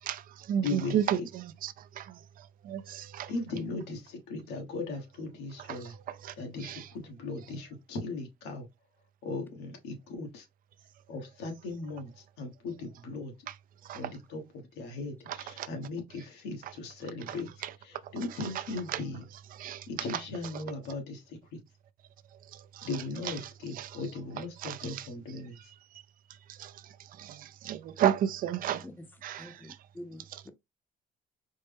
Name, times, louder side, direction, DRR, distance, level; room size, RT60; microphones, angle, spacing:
voice 1, 0.0-3.3 5.7-6.9 13.8-14.0 15.3-15.7 16.6-16.7 17.3-17.7 18.0-18.1 18.4-18.6 18.9-19.0 19.5-20.2 20.5-20.6 22.3-22.9 23.2-24.0 24.6-25.1 25.6-25.7 25.9-26.0 26.3-28.8 29.2-29.5, right 10 dB, 55° right, 0.4 m, -34 dB
voice 2, 0.6-1.3 3.3-5.9 6.4-8.7 9.2-10.5 11.1-13.3 13.9-17.5 17.8-19.2 19.9-21.6 22.8-25.7, left 3 dB, 90° left, 1.3 m, -38 dB
voice 3, 29.4-30.5, left 1 dB, 10° left, 0.6 m, -47 dB
4.4 x 2.1 x 3.3 m
cardioid pair, 110°, 17 cm